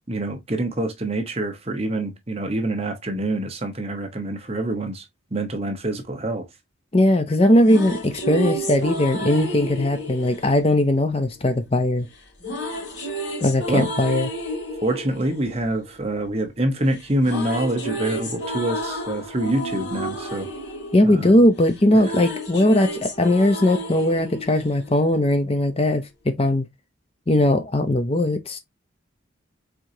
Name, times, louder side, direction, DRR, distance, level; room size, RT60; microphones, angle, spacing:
voice 1, 0.1-5.0 5.3-6.4 13.7-13.9 14.8-20.5 21.0-21.3, right 1 dB, 30° right, 1.0 m, -26 dB
voice 2, 6.9-12.1 13.4-14.3 20.9-26.6 27.3-28.6, left 1 dB, 30° left, 0.6 m, -19 dB
sound 1, 7.4-11.5 12.4-16.6 16.9-25.4, right 1 dB, 60° left, 2.6 m, -32 dB
4.7 x 3.9 x 2.7 m
head